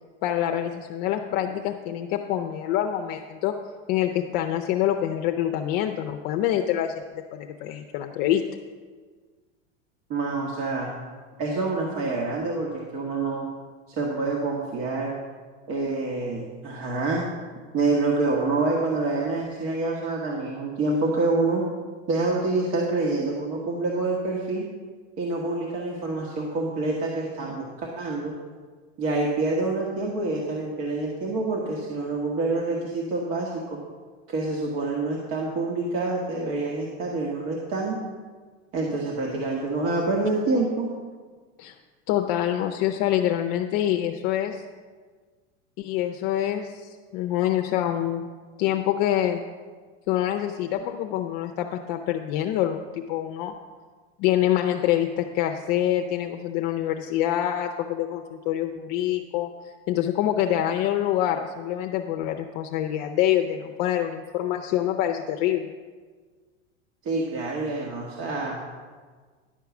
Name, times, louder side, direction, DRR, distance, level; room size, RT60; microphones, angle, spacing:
voice 1, 0.2-3.5 3.9-7.0 7.3-8.4 41.6-41.7 42.1-44.6 45.8-48.3 48.6-49.4 50.1-53.5 54.2-65.7, left 11 dB, 50° left, 5 dB, 0.6 m, -26 dB
voice 2, 10.1-10.9 11.4-13.5 13.9-15.2 15.7-17.2 17.7-21.6 22.1-24.6 25.2-28.3 29.0-33.8 34.3-38.0 38.7-40.9 67.0-68.6, right 3 dB, 45° right, -2 dB, 1.5 m, -27 dB
11.0 x 4.7 x 7.1 m, 1.5 s
supercardioid pair, 135°, 38 cm